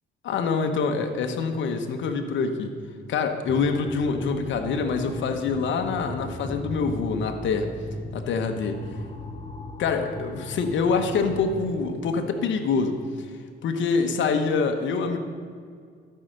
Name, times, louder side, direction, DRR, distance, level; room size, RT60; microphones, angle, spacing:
voice 1, 0.2-2.7 3.1-7.7 8.1-8.8 9.8-13.3 13.6-15.2, left 5 dB, 70° left, 5 dB, 1.1 m, -25 dB
sound 1, 3.5-11.7, left 1 dB, 30° left, 1.1 m, -37 dB
12.5 x 5.7 x 6.6 m, 2.1 s
cardioid pair, 90°, 20 cm